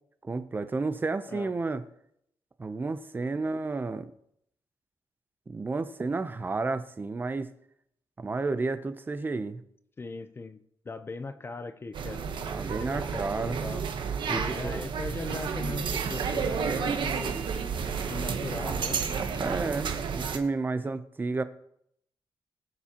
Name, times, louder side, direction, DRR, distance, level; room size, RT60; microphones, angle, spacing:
voice 1, 0.2-1.8 2.6-4.1 5.5-7.5 8.2-9.6 12.5-13.6 14.3-14.8 19.3-21.4, right 3 dB, 20° right, 0.6 m, -31 dB
voice 2, 10.0-12.3 12.8-13.8 14.3-17.4 18.0-19.7, left 3 dB, 25° left, 0.6 m, -39 dB
sound 1, 11.9-20.4, right 6 dB, 65° right, 1.0 m, -31 dB
20.0 x 7.2 x 2.9 m
wide cardioid pair, 150°, 9 cm